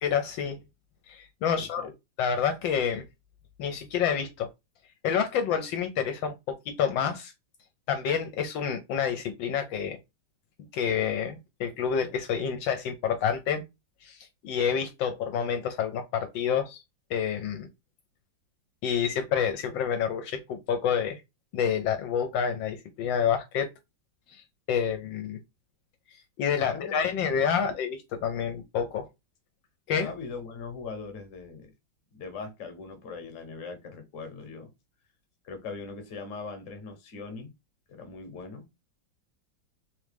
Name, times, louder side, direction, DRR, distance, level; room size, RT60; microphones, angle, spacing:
voice 1, 0.0-0.6 1.1-1.9 2.2-3.0 3.6-4.5 5.0-7.3 7.9-10.0 10.7-13.6 14.0-16.8 17.1-17.7 18.8-21.2 21.5-23.7 24.3-25.4 26.1-29.1 29.9-30.1, left 7 dB, 75° left, 1.3 m, -28 dB
voice 2, 1.6-1.9 26.6-27.2 27.6-27.7 29.9-31.7 32.1-34.7 35.4-37.5 37.9-38.7, left 4 dB, 50° left, 1.2 m, -40 dB
3.6 x 3.0 x 3.3 m
omnidirectional pair, 2.1 m